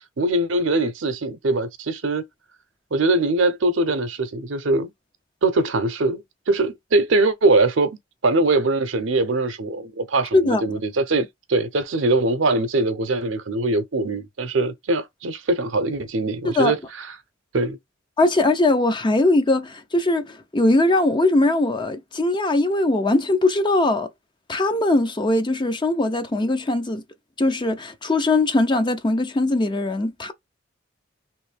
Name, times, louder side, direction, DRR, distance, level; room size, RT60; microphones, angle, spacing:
voice 1, 0.2-2.2 2.9-4.9 5.4-8.0 8.2-16.8 17.5-17.8, right 2 dB, 65° right, 0.6 m, -22 dB
voice 2, 10.3-10.8 16.4-16.7 18.2-24.1 24.5-27.0 27.4-30.3, left 2 dB, 25° left, 0.5 m, -20 dB
3.1 x 2.6 x 3.3 m
head